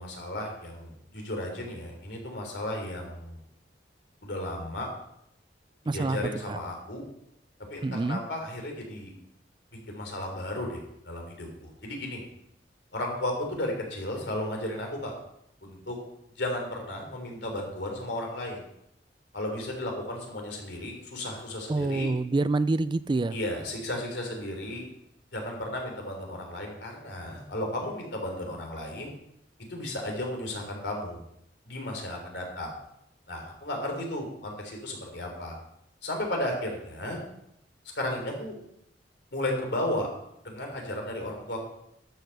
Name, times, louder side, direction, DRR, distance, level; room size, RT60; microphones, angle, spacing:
voice 1, 0.0-3.4 4.2-4.9 5.8-7.0 7.7-9.1 9.9-10.8 11.0-12.2 12.9-15.1 15.6-16.0 16.4-18.6 19.3-22.1 23.3-24.8 25.3-29.1 29.7-31.2 31.7-32.7 33.3-35.6 36.0-37.2 37.9-38.6 39.3-40.1 40.4-41.6, left 1 dB, 65° left, 1 dB, 3.5 m, -34 dB
voice 2, 5.9-6.2 6.5-6.6 7.8-8.2 21.7-23.4, right 3 dB, 25° right, 15 dB, 0.3 m, -26 dB
13.0 x 6.7 x 6.5 m, 0.76 s
head